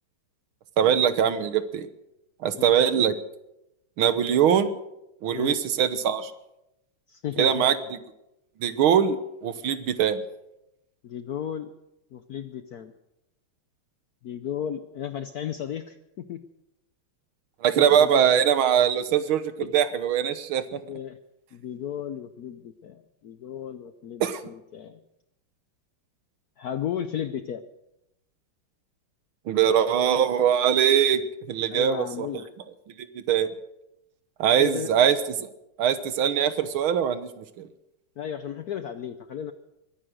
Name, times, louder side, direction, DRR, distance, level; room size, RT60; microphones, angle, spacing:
voice 1, 0.8-1.9 2.4-3.1 4.0-4.7 5.2-6.3 7.4-7.8 8.6-10.2 17.6-20.8 24.2-24.4 29.5-31.2 31.5-32.0 33.2-33.5 34.4-35.2 35.8-37.7, right 9 dB, 75° right, 12 dB, 1.8 m, -22 dB
voice 2, 2.5-2.9 5.3-5.6 7.1-7.6 11.0-11.7 12.1-12.9 14.2-16.4 17.8-18.3 20.8-21.2 21.5-25.0 26.6-27.6 31.7-32.5 34.6-35.0 38.2-39.5, left 9 dB, 70° left, 10 dB, 0.9 m, -34 dB
21.5 x 10.0 x 6.4 m, 0.88 s
omnidirectional pair, 2.3 m